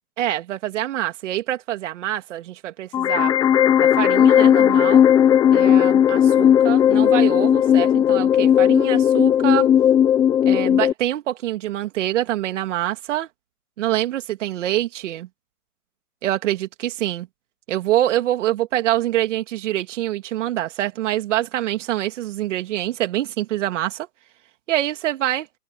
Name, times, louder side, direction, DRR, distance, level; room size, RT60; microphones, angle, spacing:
voice 1, 0.2-3.3 3.8-5.1 5.5-9.7 10.4-13.3 13.8-15.3 16.2-17.3 17.7-24.1 24.7-25.4, right 13 dB, 50° right, 2.9 m, -25 dB
sound 1, 2.9-10.9, left 9 dB, 10° left, 0.7 m, -16 dB
open air
hypercardioid pair, 145°, 48 cm